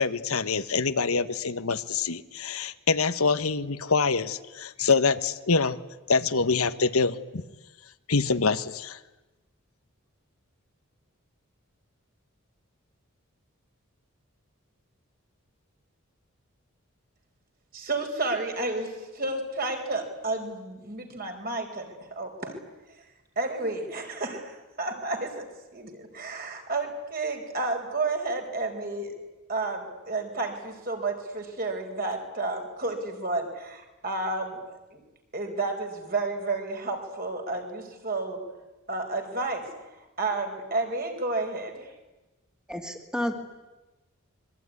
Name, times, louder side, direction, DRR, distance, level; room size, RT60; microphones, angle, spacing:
voice 1, 0.0-5.8 6.1-7.4 8.1-9.0, left 4 dB, 90° left, 11 dB, 1.2 m, -25 dB
voice 2, 17.7-22.5 23.4-25.5 25.7-29.1 29.5-34.6 34.9-35.0 35.3-38.4 38.9-39.7 40.2-41.9, right 3 dB, 45° right, 4 dB, 4.8 m, -31 dB
voice 3, 42.7-43.4, left 1 dB, 5° right, 4 dB, 2.3 m, -31 dB
25.5 x 23.0 x 9.7 m, 1.1 s
head